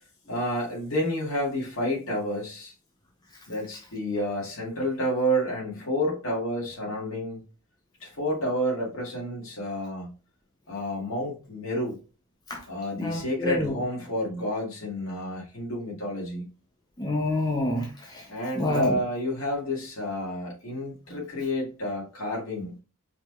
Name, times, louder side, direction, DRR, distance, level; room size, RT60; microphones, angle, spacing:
voice 1, 0.3-2.7 3.5-7.4 8.0-10.1 10.7-12.0 12.7-16.5 18.3-22.8, equal, 70° left, 2.1 m, -30 dB
voice 2, 13.0-13.7 17.0-18.2 18.6-19.0, left 1 dB, 15° left, 0.6 m, -27 dB
4.8 x 3.1 x 2.3 m
head